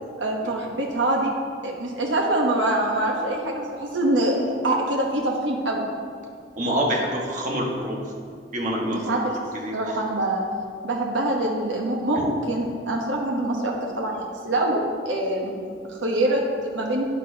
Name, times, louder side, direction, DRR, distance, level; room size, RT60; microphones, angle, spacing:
voice 1, 0.2-1.3 1.6-4.4 4.6-5.8 8.9-9.2 9.7-10.4 10.8-15.6 15.9-17.1, right 1 dB, 85° right, -1 dB, 1.1 m, -24 dB
voice 2, 6.6-8.0 8.5-9.0 9.6-10.0 12.1-12.2, equal, 45° right, -2 dB, 1.5 m, -26 dB
11.0 x 9.6 x 2.8 m, 2.2 s
head